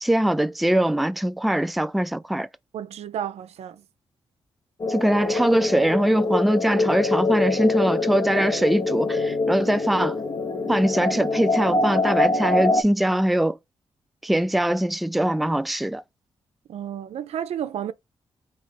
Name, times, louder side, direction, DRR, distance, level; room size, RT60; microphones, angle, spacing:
voice 1, 0.0-2.5 4.9-10.2 10.7-13.6 14.2-16.0, right 1 dB, ahead, 0.3 m, -22 dB
voice 2, 2.7-3.8 16.7-17.9, right 9 dB, 80° right, 0.4 m, -31 dB
sound 1, 4.8-12.8, left 2 dB, 45° left, 0.7 m, -24 dB
4.0 x 2.8 x 3.4 m
cardioid pair, 60°, 11 cm